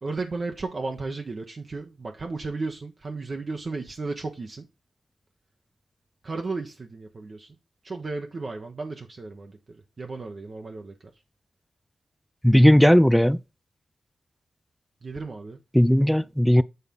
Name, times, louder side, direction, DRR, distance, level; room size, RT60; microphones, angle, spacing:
voice 1, 0.0-4.7 6.2-7.5 7.8-11.1 15.0-15.6, right 3 dB, 50° right, 1.1 m, -34 dB
voice 2, 12.4-13.4 15.7-16.6, equal, 5° left, 0.4 m, -16 dB
8.1 x 3.4 x 5.5 m
cardioid pair, 55°, 0 cm